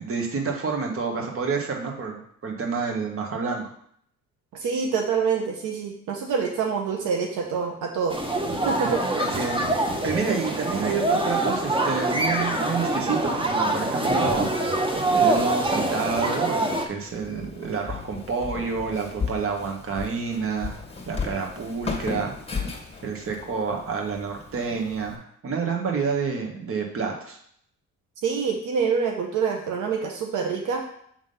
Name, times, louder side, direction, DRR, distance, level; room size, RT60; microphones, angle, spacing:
voice 1, 0.0-3.7 9.2-14.5 15.1-20.8 21.1-22.3 23.0-27.4, right 5 dB, 45° right, 1 dB, 1.6 m, -29 dB
voice 2, 4.5-8.2 8.6-9.0 28.2-30.8, right 6 dB, 85° right, 2 dB, 1.0 m, -26 dB
sound 1, 8.1-16.9, right 2 dB, 15° right, 1.1 m, -24 dB
Walk footsteps, 17.0-25.1, left 5 dB, 20° left, 1.8 m, -35 dB
7.1 x 3.7 x 5.6 m, 0.66 s
cardioid pair, 90°, 30 cm